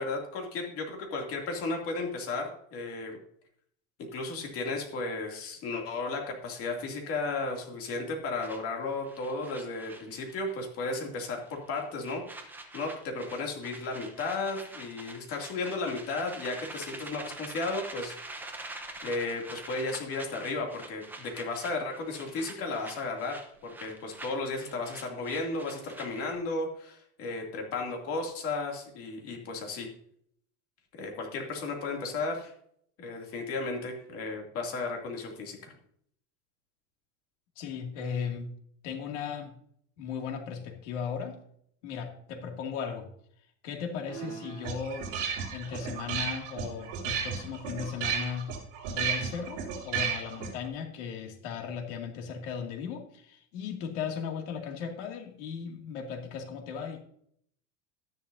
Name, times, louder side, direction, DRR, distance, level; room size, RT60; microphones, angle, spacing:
voice 1, 0.0-3.2 4.1-12.4 12.7-18.5 19.0-29.9 30.9-32.5 33.0-35.7, left 3 dB, 40° left, 1 dB, 2.7 m, -34 dB
sound 1, 8.4-10.7 10.9-11.2 11.5-26.4, right 2 dB, 5° right, 0.8 m, -45 dB
voice 2, 37.6-38.5 38.8-39.5 40.0-41.4 41.8-43.1 43.6-45.1 45.5-48.6 48.9-57.0, left 6 dB, 80° left, 3 dB, 2.4 m, -37 dB
sound 2, 44.1-50.7, right 7 dB, 60° right, 3.5 m, -34 dB
12.5 x 11.0 x 2.7 m, 0.66 s
cardioid pair, 165°, 35 cm